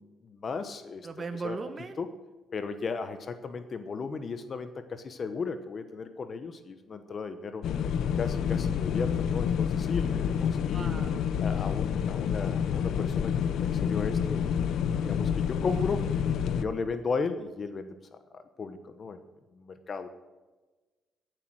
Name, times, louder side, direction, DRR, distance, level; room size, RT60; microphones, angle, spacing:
voice 1, 0.0-1.1 1.4-1.6 2.0-2.1 2.5-7.6 8.2-10.9 11.4-16.0 16.5-19.2 19.5-20.1, left 4 dB, 45° left, 10 dB, 1.1 m, -35 dB
voice 2, 1.0-2.0 10.7-11.2, right 4 dB, 35° right, 8 dB, 1.2 m, -38 dB
sound 1, 7.6-16.6, left 8 dB, 75° left, 0.8 m, -28 dB
16.5 x 7.8 x 6.3 m, 1.2 s
cardioid pair, 90°, 0 cm